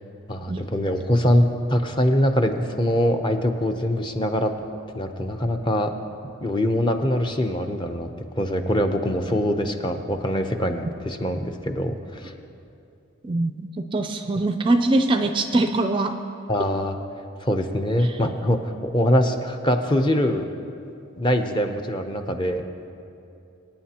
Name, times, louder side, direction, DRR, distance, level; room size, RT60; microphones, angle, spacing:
voice 1, 0.3-4.5 4.9-5.9 6.4-8.1 8.4-12.3 16.5-17.0 17.4-20.5 21.2-22.6, equal, 20° left, 5 dB, 0.6 m, -23 dB
voice 2, 13.2-16.1 18.0-18.2, right 2 dB, 25° right, 7 dB, 0.4 m, -23 dB
25.0 x 9.4 x 2.9 m, 2.7 s
head